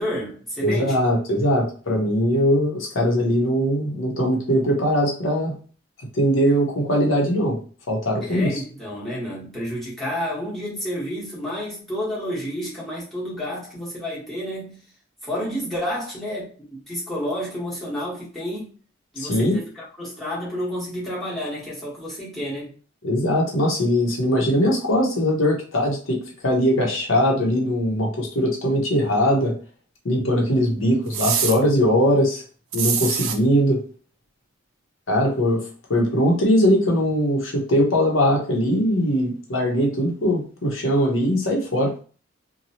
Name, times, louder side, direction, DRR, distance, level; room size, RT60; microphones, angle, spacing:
voice 1, 0.0-1.0 8.2-14.8 15.2-18.7 19.1-22.7, equal, ahead, 1.2 m, -30 dB
voice 2, 0.6-5.5 6.1-7.6 7.9-8.6 19.2-19.6 23.0-29.5 30.0-32.4 32.7-33.8 35.1-35.6 35.9-41.9, equal, 75° left, 0.9 m, -21 dB
sound 1, 31.1-31.6 32.7-33.4, right 7 dB, 85° right, 0.4 m, -24 dB
2.9 x 2.2 x 2.8 m
head